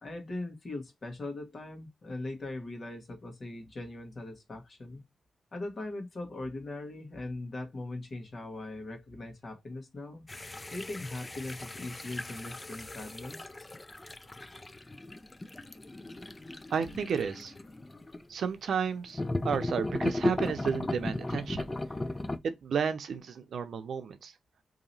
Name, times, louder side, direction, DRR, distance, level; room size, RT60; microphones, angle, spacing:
voice 1, 0.0-5.0 5.5-10.2 10.7-13.5, left 2 dB, 45° left, 1.3 m, -40 dB
sound 1, 10.3-18.2 19.1-22.4, left 2 dB, 20° left, 0.3 m, -36 dB
voice 2, 16.7-17.5 18.3-19.2 19.4-21.6 22.4-24.3, right 6 dB, 80° right, 0.6 m, -32 dB
2.9 x 2.8 x 3.9 m
wide cardioid pair, 100°, 0 cm